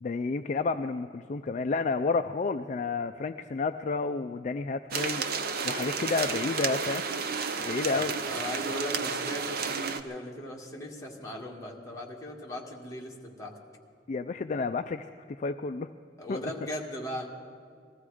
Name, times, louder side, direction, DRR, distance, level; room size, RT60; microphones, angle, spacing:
voice 1, 0.0-5.2 5.6-7.0 7.3-8.2 14.1-15.9 16.3-16.4, left 4 dB, 40° left, 9 dB, 0.4 m, -31 dB
sound 1, 4.9-10.0, right 5 dB, 55° right, 0.8 m, -32 dB
voice 2, 7.9-13.6 16.2-17.3, equal, 15° left, -2 dB, 2.0 m, -38 dB
20.5 x 14.5 x 4.9 m, 2.4 s
head